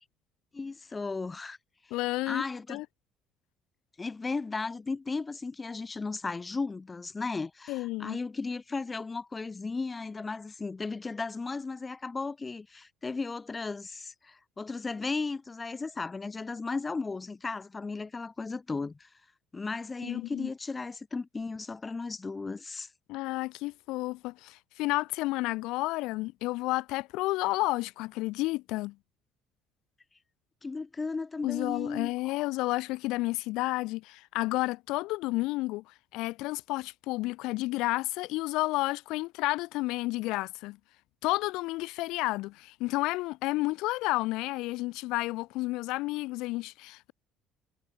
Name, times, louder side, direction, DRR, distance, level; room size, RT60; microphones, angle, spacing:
voice 1, 0.5-1.6 2.3-2.8 4.0-19.1 19.5-22.9 30.6-32.4, left 4 dB, 25° left, 2.0 m, -35 dB
voice 2, 1.9-2.4 2.7-2.8 7.7-8.2 20.0-20.5 23.1-28.9 31.4-35.8 36.1-40.8 41.2-47.1, left 20 dB, 70° left, 0.8 m, -31 dB
hypercardioid pair, 60°, 0 cm